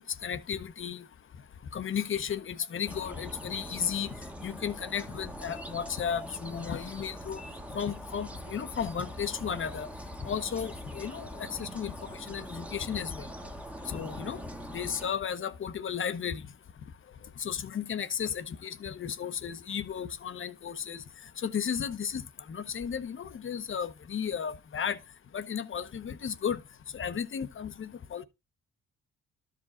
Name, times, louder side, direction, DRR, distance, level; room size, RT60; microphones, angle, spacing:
voice 1, 0.2-1.0 1.7-4.1 4.4-7.4 7.7-9.9 10.2-11.9 12.3-13.2 13.9-14.4 14.7-16.4 17.4-21.0 21.4-22.2 22.5-25.0 25.3-26.6 26.9-28.2, left 7 dB, 40° left, 0.8 m, -34 dB
sound 1, 2.8-15.1, equal, 5° right, 1.0 m, -43 dB
12.5 x 5.1 x 3.7 m
cardioid pair, 90°, 30 cm